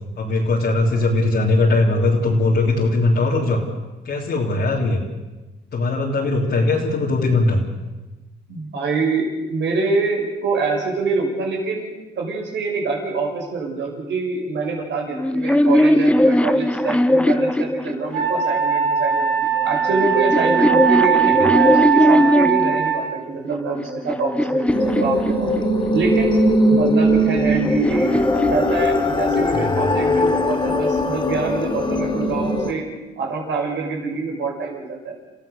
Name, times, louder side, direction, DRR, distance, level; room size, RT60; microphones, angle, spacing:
voice 1, 0.2-3.6 4.1-5.0 5.7-7.6 29.5-29.9, left 2 dB, 60° left, -4 dB, 3.4 m, -20 dB
voice 2, 8.5-19.3 19.6-25.5 25.9-26.4 26.7-28.1 28.5-32.9 33.2-35.1, right 3 dB, 65° right, 1 dB, 6.2 m, -25 dB
sound 1, 15.1-18.5 19.4-22.8 23.5-25.9 27.0-29.4, left 1 dB, 5° left, 0.7 m, -20 dB
Wind instrument woodwind instrument, 18.1-23.0, right 9 dB, 85° right, 5.2 m, -20 dB
sound 2, 24.7-32.7, equal, 25° left, 3.9 m, -20 dB
30.0 x 15.5 x 6.8 m, 1.2 s
cardioid pair, 90°, 20 cm